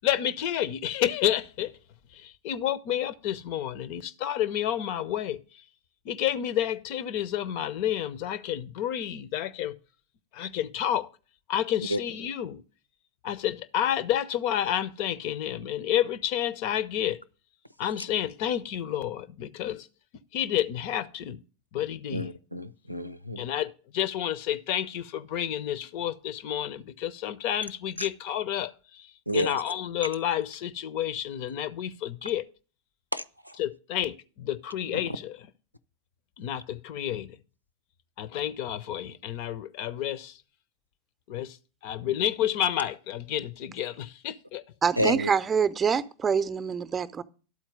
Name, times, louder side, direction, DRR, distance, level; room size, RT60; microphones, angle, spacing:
voice 1, 0.0-1.7 2.1-5.4 6.0-9.7 10.3-11.1 11.5-12.6 13.2-17.2 17.8-19.9 20.3-21.4 21.7-22.3 23.4-29.1 29.3-32.5 33.6-35.4 36.4-37.4 38.2-40.4 41.3-41.6 41.8-44.6, left 11 dB, 45° left, 0.7 m, -30 dB
voice 2, 22.1-23.4 28.0-28.1 29.3-29.6 33.1-33.5 45.0-45.3, equal, 90° right, 0.5 m, -30 dB
voice 3, 44.8-47.2, right 6 dB, 20° right, 0.7 m, -26 dB
12.0 x 4.3 x 8.0 m
figure-of-eight pair, 90°, 0 cm